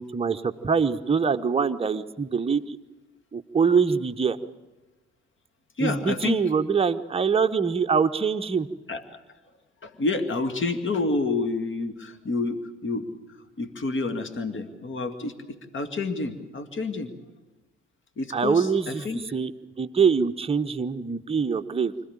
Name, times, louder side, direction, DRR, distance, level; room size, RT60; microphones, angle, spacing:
voice 1, 0.0-2.8 3.3-4.4 5.8-8.7 18.3-19.0 19.3-19.5 19.8-21.9, right 5 dB, 15° right, 7 dB, 1.0 m, -24 dB
voice 2, 5.8-6.4 8.9-9.2 9.8-13.1 13.6-17.1 18.2-19.2, left 3 dB, 35° left, 9 dB, 2.2 m, -29 dB
25.5 x 15.0 x 8.9 m, 1.1 s
figure-of-eight pair, 45°, 35 cm